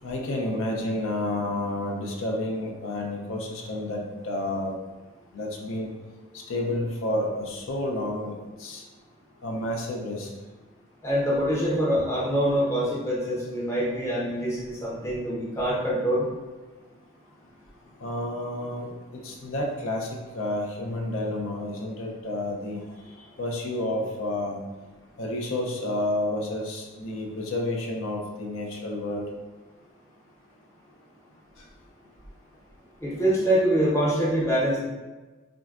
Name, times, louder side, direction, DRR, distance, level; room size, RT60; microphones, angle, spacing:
voice 1, 0.0-4.8 5.3-5.9 6.3-8.8 9.4-10.3 18.0-22.9 23.4-24.6 25.2-29.3 31.6-31.7, left 1 dB, 85° left, 0 dB, 0.5 m, -30 dB
voice 2, 11.0-16.3 23.2-23.3 33.0-34.8, equal, 15° left, -6 dB, 0.6 m, -25 dB
3.7 x 2.1 x 2.3 m, 1.2 s
head